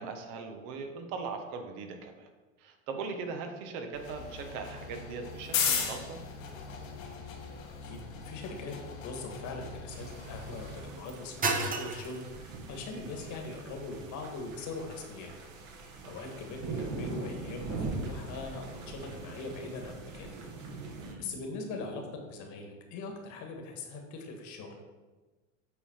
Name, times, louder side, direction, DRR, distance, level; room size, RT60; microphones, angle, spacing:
voice 1, 0.0-2.3 2.6-6.3 16.0-16.4 21.0-21.3, right 4 dB, 65° right, 5 dB, 1.2 m, -40 dB
sound 1, 3.9-10.8, left 6 dB, 85° left, 1.5 m, -37 dB
sound 2, 6.6-16.7, right 3 dB, 20° right, 0.9 m, -40 dB
voice 2, 7.8-8.7 9.0-15.3 16.0-20.3 21.2-24.7, left 3 dB, 50° left, 3 dB, 1.6 m, -41 dB
sound 3, 9.9-21.1, right 3 dB, 50° right, 1.4 m, -42 dB
8.2 x 3.9 x 4.4 m, 1.3 s
hypercardioid pair, 105°, 39 cm